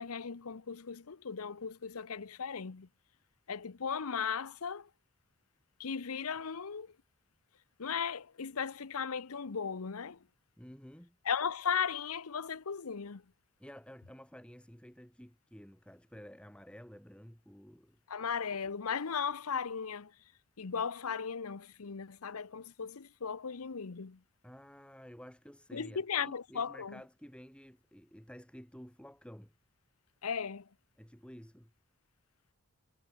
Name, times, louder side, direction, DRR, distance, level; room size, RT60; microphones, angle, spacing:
voice 1, 0.0-2.9 3.5-4.9 5.8-6.9 7.8-10.2 11.2-13.2 18.1-20.1 20.6-24.2 25.7-27.0 30.2-30.7, left 6 dB, 85° left, 0.8 m, -36 dB
voice 2, 10.6-11.2 13.6-18.0 24.4-29.5 31.0-31.7, equal, 5° left, 3.8 m, -52 dB
head